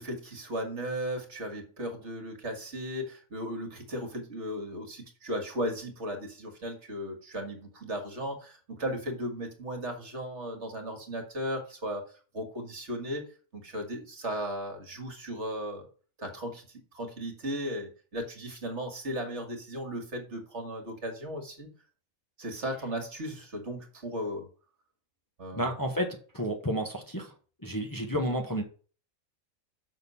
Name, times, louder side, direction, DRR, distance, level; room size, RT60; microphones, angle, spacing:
voice 1, 0.0-12.1 12.3-13.3 13.5-15.9 16.2-21.7 22.4-24.5 25.4-25.7, equal, 55° right, 4 dB, 2.1 m, -36 dB
voice 2, 25.5-27.3 27.6-28.6, equal, 15° left, 1 dB, 1.3 m, -31 dB
6.6 x 6.3 x 5.5 m, 0.39 s
omnidirectional pair, 1.5 m